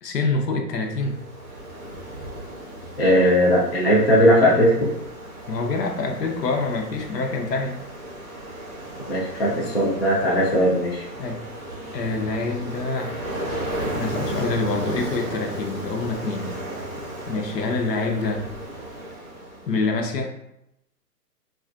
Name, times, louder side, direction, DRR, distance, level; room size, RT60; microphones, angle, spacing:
voice 1, 0.0-1.2 5.5-7.8 11.2-11.4 11.9-13.2 13.9-16.6 17.3-18.4 19.6-20.3, left 3 dB, 80° left, 2 dB, 0.7 m, -26 dB
Ocean, 0.8-19.9, right 1 dB, 25° right, 0.7 m, -35 dB
voice 2, 3.0-4.9 9.1-11.0, equal, 40° left, -5 dB, 0.4 m, -18 dB
2.9 x 2.4 x 2.4 m, 0.81 s
hypercardioid pair, 175°, 48 cm